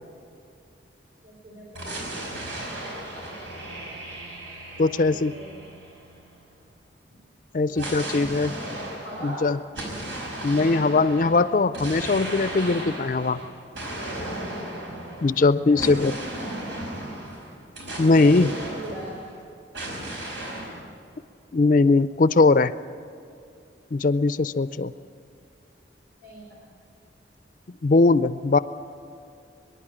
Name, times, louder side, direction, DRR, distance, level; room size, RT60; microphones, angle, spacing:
voice 1, 1.2-3.0 4.8-5.7 7.6-8.5 9.0-9.5 15.7-16.8 18.2-19.2 26.2-26.6, right 1 dB, 60° right, -5 dB, 4.8 m, -41 dB
sound 1, 1.7-6.5 7.7-19.4 19.7-20.8, right 1 dB, 90° right, 5.2 m, -35 dB
voice 2, 4.8-5.3 7.5-8.5 9.2-9.6 10.4-13.4 15.2-16.1 18.0-18.5 21.5-22.7 23.9-24.9 27.8-28.6, left 3 dB, 45° left, 14 dB, 0.4 m, -20 dB
24.0 x 11.0 x 10.0 m, 2.5 s
head